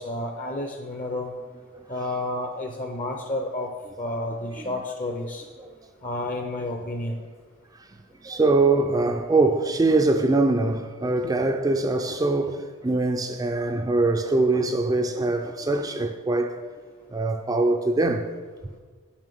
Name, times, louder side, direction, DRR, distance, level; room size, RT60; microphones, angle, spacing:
voice 1, 0.0-1.3 1.9-5.4 6.0-7.3 11.2-11.3, left 1 dB, 40° left, 0.7 m, -31 dB
voice 2, 8.2-16.6 17.1-18.3, right 2 dB, 15° right, 0.3 m, -23 dB
7.3 x 5.3 x 6.8 m
head